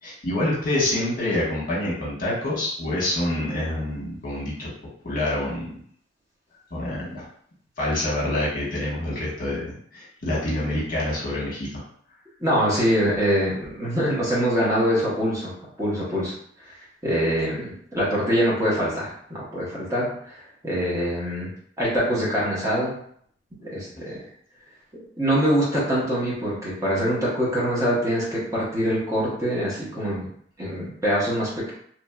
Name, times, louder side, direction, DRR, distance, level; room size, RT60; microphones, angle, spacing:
voice 1, 0.0-4.7 5.0-5.7 6.7-7.2 7.8-11.8 23.9-24.1, left 1 dB, 50° left, -6 dB, 1.0 m, -27 dB
voice 2, 12.4-15.5 15.8-16.3 17.0-20.4 20.6-21.5 21.8-22.9 23.6-24.2 25.2-30.3 30.6-31.7, equal, 20° right, -7 dB, 0.9 m, -24 dB
2.9 x 2.5 x 2.2 m, 0.63 s
head